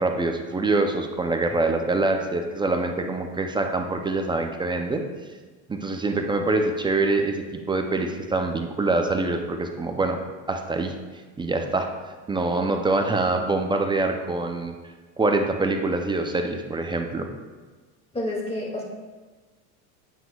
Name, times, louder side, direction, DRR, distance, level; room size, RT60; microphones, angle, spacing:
voice 1, 0.0-5.0 5.7-10.2 10.5-10.9 11.4-11.9 12.3-14.7 15.2-17.3, right 2 dB, 10° right, 4 dB, 0.5 m, -25 dB
voice 2, 18.1-18.8, left 1 dB, 15° left, -2 dB, 2.2 m, -29 dB
9.1 x 8.1 x 2.3 m, 1.4 s
supercardioid pair, 110°, 44 cm